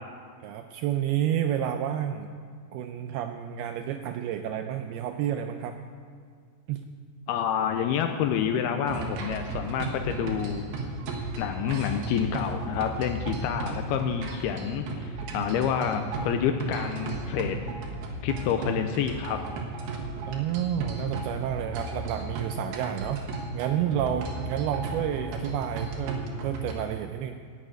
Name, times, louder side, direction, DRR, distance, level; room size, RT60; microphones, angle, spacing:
voice 1, 0.4-2.3 2.7-5.8 6.7-6.8 20.3-23.2 23.5-27.3, right 10 dB, 85° right, 7 dB, 2.3 m, -30 dB
voice 2, 7.3-10.9 11.4-17.6 18.2-19.4, left 8 dB, 85° left, 6 dB, 2.3 m, -28 dB
sound 1, 8.9-26.7, right 3 dB, 70° right, 3.3 m, -35 dB
11.0 x 8.3 x 9.0 m, 2.1 s
omnidirectional pair, 5.0 m